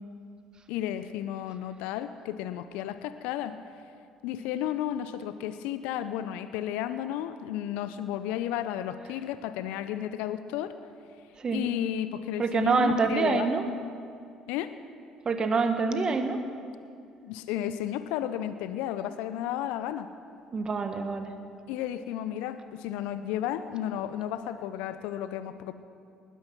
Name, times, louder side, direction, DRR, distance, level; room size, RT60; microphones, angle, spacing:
voice 1, 0.7-3.6 4.2-10.7 11.5-13.5 14.5-14.7 17.2-20.1 21.7-25.7, left 11 dB, 70° left, 12 dB, 0.6 m, -33 dB
voice 2, 12.4-13.7 15.2-16.4 20.5-21.3, right 4 dB, 40° right, 8 dB, 1.5 m, -26 dB
19.5 x 10.5 x 6.0 m, 2.4 s
hypercardioid pair, 55°, 2 cm